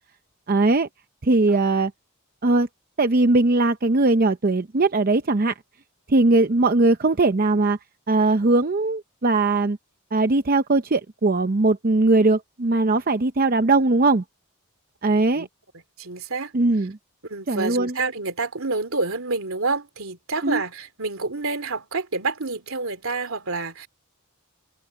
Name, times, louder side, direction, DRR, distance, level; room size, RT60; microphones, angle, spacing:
voice 1, 0.5-0.9 1.2-1.9 2.4-2.7 3.0-5.5 6.1-7.8 8.1-9.8 10.1-14.2 15.0-15.5 16.5-17.0 17.5-18.0 20.4-20.6, right 2 dB, 40° right, 0.6 m, -20 dB
voice 2, 16.0-16.5 17.2-23.9, right 3 dB, 70° right, 2.9 m, -28 dB
head